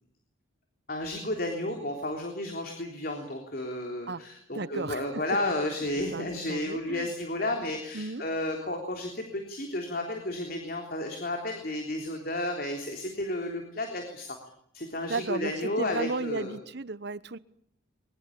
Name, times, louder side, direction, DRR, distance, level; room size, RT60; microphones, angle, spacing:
voice 1, 0.9-14.4 14.7-16.5, left 1 dB, 45° left, 3 dB, 3.5 m, -32 dB
voice 2, 4.5-5.4 6.1-7.1 7.9-8.2 15.1-17.4, right 3 dB, 50° right, 16 dB, 1.0 m, -34 dB
22.0 x 22.0 x 8.7 m, 0.68 s
head